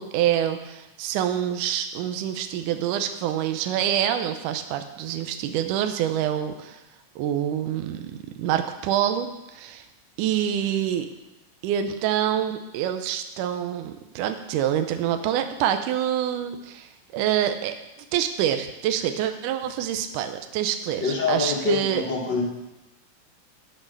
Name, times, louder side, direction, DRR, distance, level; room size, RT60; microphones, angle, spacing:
voice 1, 0.0-6.8 7.2-9.8 10.2-11.1 11.6-17.8 18.1-22.0, right 10 dB, 80° right, 7 dB, 2.2 m, -26 dB
voice 2, 21.0-22.4, left 4 dB, 50° left, -1 dB, 1.5 m, -25 dB
9.5 x 6.1 x 6.5 m, 0.97 s
omnidirectional pair, 3.8 m